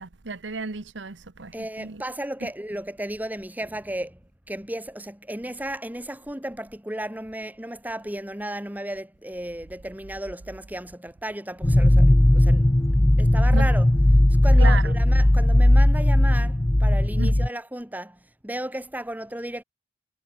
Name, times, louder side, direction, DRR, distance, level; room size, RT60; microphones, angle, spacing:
voice 1, 0.0-2.0 2.4-2.5 13.5-13.7 14.6-15.0 17.2-17.5, right 4 dB, 75° right, 1.1 m, -33 dB
voice 2, 1.5-4.2 4.5-12.7 13.2-13.9 14.4-19.6, right 1 dB, 10° right, 2.9 m, -34 dB
sound 1, 11.6-17.5, left 1 dB, 15° left, 0.6 m, -17 dB
head